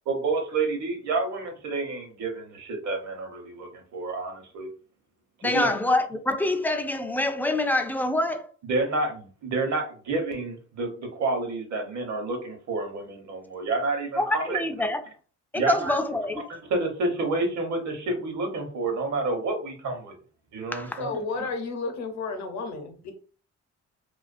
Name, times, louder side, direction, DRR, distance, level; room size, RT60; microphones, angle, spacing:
voice 1, 0.1-4.7 5.4-5.7 8.7-14.6 15.5-15.9 16.7-20.2 20.5-21.2, right 3 dB, 65° right, 0.9 m, -29 dB
voice 2, 5.4-8.5 14.2-15.0 15.5-16.4 20.7-21.0, left 2 dB, 5° left, 0.3 m, -26 dB
voice 3, 21.0-23.1, left 4 dB, 65° left, 0.7 m, -32 dB
2.4 x 2.3 x 2.5 m
cardioid pair, 90°, 30 cm